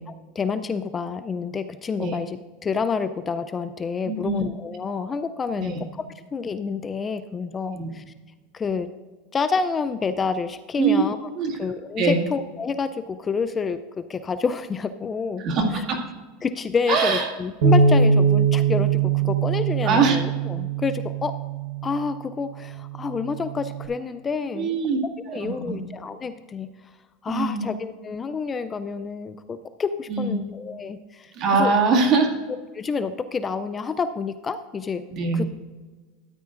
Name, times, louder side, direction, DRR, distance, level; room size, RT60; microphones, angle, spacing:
voice 1, 0.1-2.4 2.6-6.0 6.3-8.0 8.5-8.9 9.3-11.3 11.6-15.4 16.4-21.3 21.8-24.8 25.3-26.9 27.2-31.7 32.7-35.0 35.3-35.5, left 5 dB, 20° left, 12 dB, 0.3 m, -28 dB
voice 2, 4.1-4.5 5.6-5.8 7.7-7.9 10.8-11.6 12.0-12.2 15.4-16.0 16.9-17.3 19.8-20.2 24.5-25.0 25.3-25.8 27.3-27.6 30.1-30.4 31.3-32.3 35.1-35.4, right 4 dB, 40° right, 1 dB, 2.0 m, -22 dB
Bass guitar, 17.6-22.0 22.7-23.9, right 5 dB, 80° right, 1.1 m, -22 dB
13.5 x 9.4 x 2.5 m, 1.4 s
supercardioid pair, 140°, 0 cm